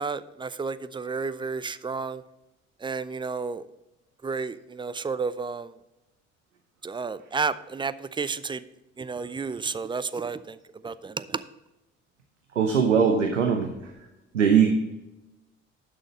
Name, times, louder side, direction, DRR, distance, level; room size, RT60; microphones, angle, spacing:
voice 1, 0.0-2.2 2.8-3.6 4.2-5.7 6.8-8.6 9.0-10.6 10.8-11.4, right 4 dB, 15° right, 15 dB, 0.5 m, -31 dB
voice 2, 12.6-13.9 14.3-14.9, right 6 dB, 90° right, 4 dB, 0.7 m, -21 dB
11.0 x 6.4 x 4.3 m, 0.97 s
figure-of-eight pair, 45°, 36 cm